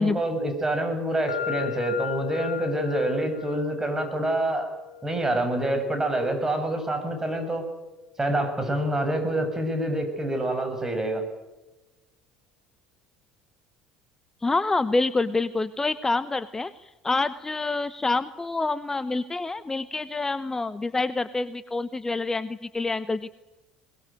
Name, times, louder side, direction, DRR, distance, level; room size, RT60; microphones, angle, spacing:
voice 1, 0.0-4.7 5.0-7.6 8.2-11.2, right 1 dB, 20° right, 6 dB, 7.2 m, -26 dB
sound 1, 1.3-9.1, left 10 dB, 80° left, 1.5 m, -38 dB
voice 2, 14.4-23.3, left 3 dB, 20° left, 14 dB, 1.0 m, -27 dB
22.5 x 21.0 x 9.2 m, 1.0 s
figure-of-eight pair, 60°, 3 cm